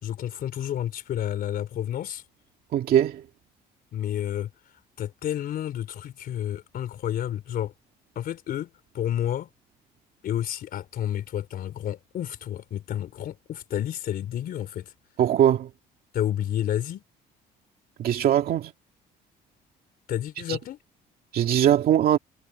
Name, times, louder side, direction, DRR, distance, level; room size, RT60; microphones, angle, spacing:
voice 1, 0.0-2.2 3.9-4.5 5.0-7.7 8.2-8.7 8.9-9.5 10.2-14.9 16.1-17.0 20.1-20.8, left 11 dB, 60° left, 3.6 m, -30 dB
voice 2, 2.7-3.2 15.2-15.7 18.0-18.7 20.5-20.6 21.3-22.2, right 10 dB, 60° right, 2.3 m, -21 dB
cardioid pair, 110°, 17 cm